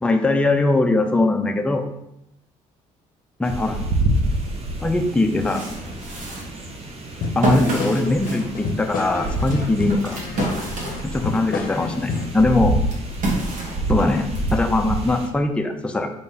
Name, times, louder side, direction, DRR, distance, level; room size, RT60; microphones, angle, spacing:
voice 1, 0.0-1.9 3.4-3.8 4.8-5.7 7.4-10.2 11.0-12.8 13.9-16.1, left 2 dB, 5° left, 5 dB, 0.5 m, -21 dB
sound 1, 3.4-15.3, right 1 dB, 40° right, 0.9 m, -28 dB
sound 2, 5.1-11.5 11.9-14.5, right 2 dB, 55° right, 1.3 m, -29 dB
sound 3, 7.2-12.4, left 3 dB, 60° left, 0.7 m, -30 dB
4.5 x 3.6 x 2.8 m, 0.83 s
supercardioid pair, 65°, 16 cm